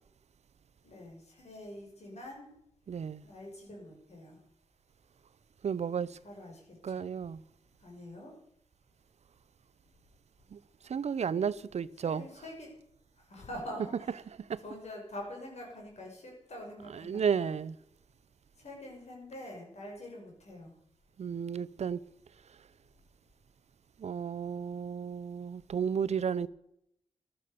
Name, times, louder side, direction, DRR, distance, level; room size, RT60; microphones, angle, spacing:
voice 1, 0.8-2.5 3.2-4.4 6.2-7.0 7.8-8.3 12.0-12.7 13.3-14.2 14.6-17.5 18.6-20.8, left 1 dB, 75° left, 6.6 m, -45 dB
voice 2, 2.9-3.2 5.6-6.2 6.8-7.4 10.5-10.6 10.8-12.3 14.5-14.6 16.9-17.8 21.2-22.0 24.0-26.5, right 7 dB, 75° right, 0.6 m, -33 dB
15.5 x 12.5 x 6.8 m
wide cardioid pair, 80°, 11 cm